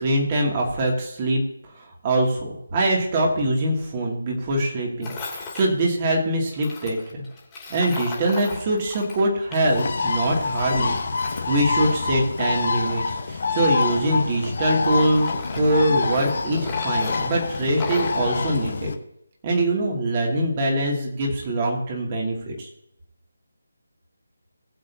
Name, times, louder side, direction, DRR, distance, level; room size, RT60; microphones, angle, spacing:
voice 1, 0.0-1.4 1.8-7.2 7.7-18.9 19.4-22.7, right 1 dB, 30° right, -1 dB, 2.7 m, -23 dB
Tools, 5.0-5.7 6.5-9.8 10.1-12.4 13.0-14.7 15.0-18.2, left 4 dB, 15° left, 2.6 m, -36 dB
Bird, 9.7-18.9, left 4 dB, 50° left, 1.2 m, -26 dB
20.0 x 7.7 x 2.9 m, 0.79 s
figure-of-eight pair, 155°, 0 cm